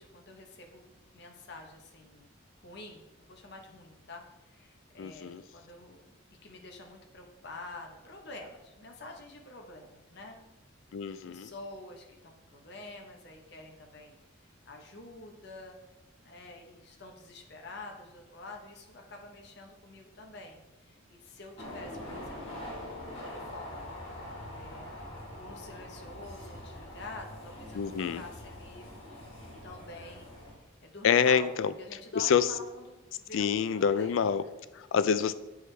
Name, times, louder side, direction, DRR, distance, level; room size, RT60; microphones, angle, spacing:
voice 1, 0.0-2.3 2.6-6.1 6.4-10.4 11.2-14.2 14.7-15.8 16.2-22.7 23.0-23.9 24.6-25.0 25.3-27.9 28.1-28.9 29.6-30.3 30.8-34.6, left 2 dB, 55° left, 2 dB, 0.9 m, -48 dB
voice 2, 5.0-5.4 10.9-11.5 27.7-28.2 31.0-31.7 32.1-32.5 33.3-34.4 34.8-35.3, left 7 dB, 70° left, 14 dB, 0.3 m, -26 dB
sound 1, 21.6-30.5, left 1 dB, 30° left, 1.8 m, -44 dB
7.8 x 4.8 x 3.3 m, 1.1 s
head